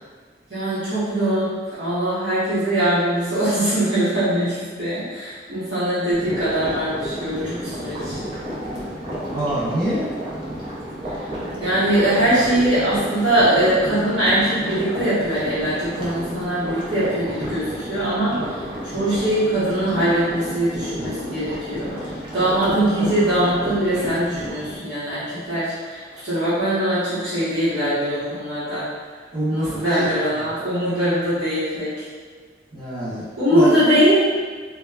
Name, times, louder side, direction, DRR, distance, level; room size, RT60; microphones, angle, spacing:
voice 1, 0.5-8.2 11.0-11.3 11.6-29.2 29.5-32.1 33.4-34.2, right 1 dB, 75° right, -13 dB, 1.1 m, -22 dB
sound 1, 6.1-24.8, equal, 25° right, 0.5 m, -31 dB
voice 2, 9.3-10.1 29.3-30.1 32.7-33.2 33.5-33.7, right 1 dB, 45° right, -13 dB, 1.2 m, -24 dB
2.9 x 2.3 x 2.2 m, 1.5 s
head